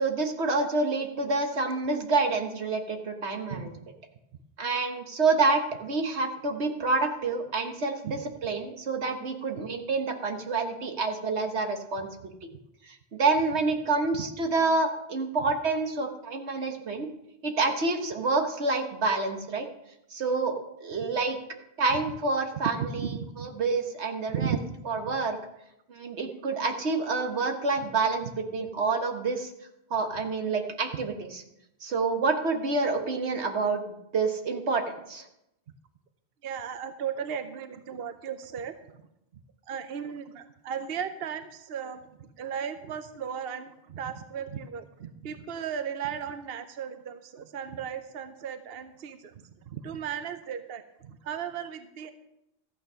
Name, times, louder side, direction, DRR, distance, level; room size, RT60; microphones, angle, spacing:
voice 1, 0.0-3.7 4.6-12.3 13.1-17.1 17.4-19.7 20.1-20.5 20.8-21.4 21.8-23.0 23.4-24.6 24.8-25.4 25.9-29.5 29.9-31.4 31.8-35.3, right 3 dB, 90° right, 5 dB, 1.6 m, -28 dB
voice 2, 22.8-23.5 24.3-24.6 36.4-38.7 39.7-52.1, right 8 dB, 65° right, 9 dB, 0.9 m, -36 dB
13.5 x 9.0 x 5.6 m, 0.83 s
omnidirectional pair, 1.1 m